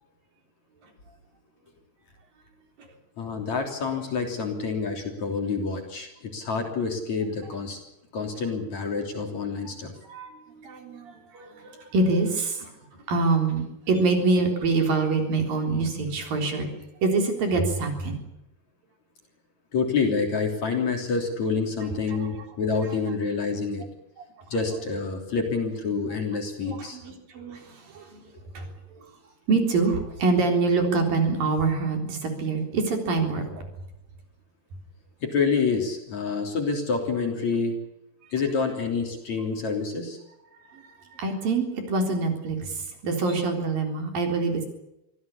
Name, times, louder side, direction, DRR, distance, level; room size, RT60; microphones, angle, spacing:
voice 1, 3.2-7.8 8.1-9.9 19.7-23.9 24.5-27.0 35.2-37.8 38.3-40.2, left 4 dB, 45° left, 3 dB, 4.4 m, -27 dB
voice 2, 10.0-16.7 17.0-18.2 21.8-22.4 22.8-23.1 24.2-24.3 26.6-28.2 28.6-29.1 29.5-33.7 40.5-44.7, right 3 dB, 55° right, 4 dB, 5.4 m, -26 dB
25.0 x 16.5 x 8.6 m, 0.85 s
omnidirectional pair, 4.8 m